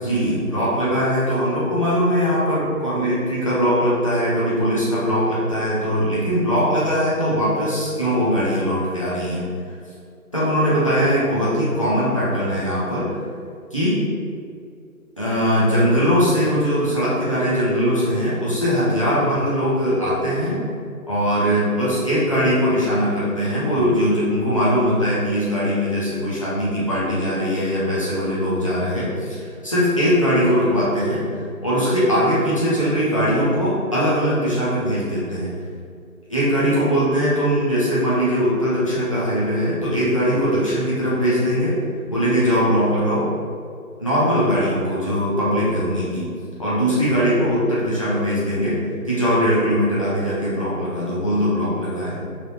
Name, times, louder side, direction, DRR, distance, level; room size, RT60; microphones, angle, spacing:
voice 1, 0.0-9.5 10.3-13.2 13.7-14.1 15.2-20.6 21.1-31.3 31.6-35.5 36.3-41.8 42.1-43.3 44.0-46.3 46.6-52.2, equal, 20° left, -10 dB, 0.7 m, -20 dB
4.9 x 3.4 x 3.0 m, 2.3 s
figure-of-eight pair, 160°, 44 cm